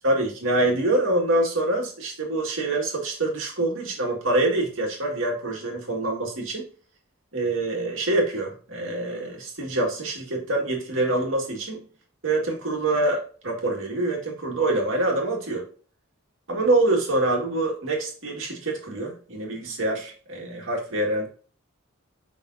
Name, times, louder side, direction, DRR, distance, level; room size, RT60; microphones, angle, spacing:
voice 1, 0.0-6.6 7.3-11.8 12.2-15.6 16.5-21.3, right 2 dB, 75° right, 0 dB, 2.1 m, -25 dB
7.2 x 5.4 x 2.7 m, 0.40 s
head